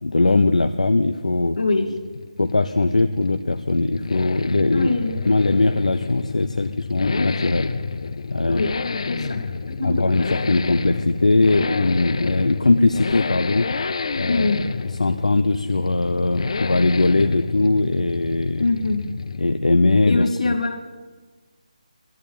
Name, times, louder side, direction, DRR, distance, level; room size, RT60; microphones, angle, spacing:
voice 1, 0.0-1.6 2.4-4.9 5.3-7.7 8.3-8.6 9.8-13.7 14.1-14.5 15.0-18.7 19.4-20.5, left 2 dB, 90° left, 8 dB, 0.7 m, -20 dB
voice 2, 1.5-1.9 4.7-5.2 8.4-8.7 9.1-10.3 14.3-14.7 18.6-19.1 20.1-20.8, left 3 dB, 70° left, 6 dB, 2.3 m, -24 dB
Accelerating revving vroom, 1.5-19.6 19.9-20.0, left 4 dB, 55° left, 0.7 m, -30 dB
14.0 x 11.5 x 8.6 m, 1.3 s
figure-of-eight pair, 165°, 4 cm